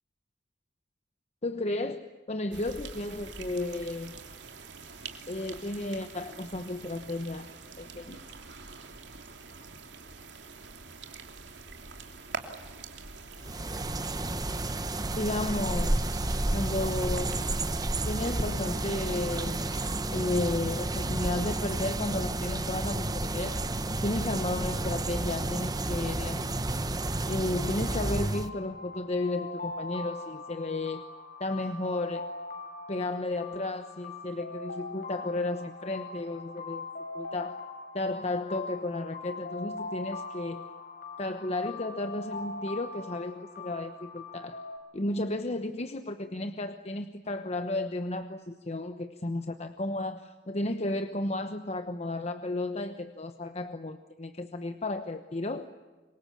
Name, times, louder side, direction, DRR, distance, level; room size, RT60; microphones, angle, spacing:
voice 1, 1.4-4.1 5.3-7.5 7.8-8.2 15.1-16.1 16.5-17.4 18.0-19.7 20.1-23.6 24.0-26.6 27.3-31.0 31.4-32.3 32.9-36.9 37.1-37.6 37.9-40.7 41.2-44.6 44.9-55.7, left 2 dB, 40° left, 8 dB, 1.1 m, -33 dB
sound 1, 2.5-20.0, right 4 dB, 80° right, 3.0 m, -45 dB
sound 2, 13.4-28.5, right 2 dB, 20° right, 1.1 m, -31 dB
sound 3, 27.5-44.8, left 3 dB, 55° left, 5.8 m, -42 dB
26.5 x 23.5 x 8.6 m, 1.3 s
head